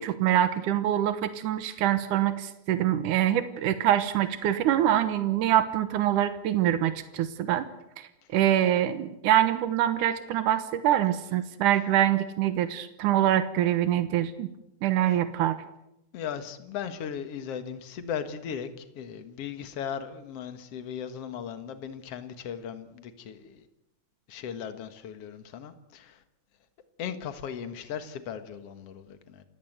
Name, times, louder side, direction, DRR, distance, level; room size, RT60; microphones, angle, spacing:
voice 1, 0.0-7.7 8.0-14.5 14.8-15.6, right 11 dB, 90° right, 12 dB, 2.7 m, -25 dB
voice 2, 16.1-23.7 24.3-26.2 27.0-29.4, left 8 dB, 55° left, 10 dB, 2.4 m, -37 dB
28.5 x 16.5 x 8.0 m, 0.85 s
omnidirectional pair, 3.5 m